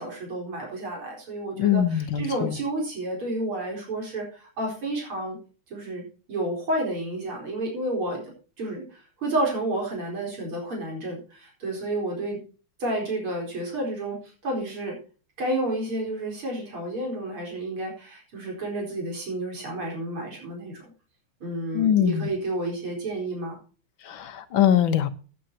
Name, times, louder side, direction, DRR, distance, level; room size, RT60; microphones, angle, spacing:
voice 1, 0.0-5.4 5.7-8.2 8.6-12.4 12.8-15.0 15.4-20.9 21.4-23.6, right 1 dB, 90° right, 0 dB, 5.2 m, -30 dB
voice 2, 1.6-2.6 21.7-22.3 24.1-25.1, left 9 dB, 70° left, 11 dB, 1.8 m, -22 dB
16.5 x 9.1 x 2.9 m, 0.36 s
omnidirectional pair, 2.3 m